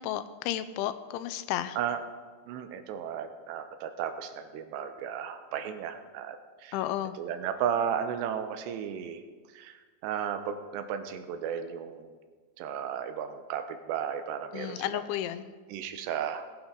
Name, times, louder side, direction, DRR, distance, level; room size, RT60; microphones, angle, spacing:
voice 1, 0.0-1.8 6.7-7.1 14.5-15.5, left 12 dB, 90° left, 13 dB, 3.0 m, -32 dB
voice 2, 2.5-6.8 7.2-9.2 9.5-12.2 12.6-15.0 15.7-16.4, right 8 dB, 80° right, 8 dB, 2.8 m, -34 dB
20.5 x 9.0 x 3.7 m, 1.4 s
omnidirectional pair, 5.4 m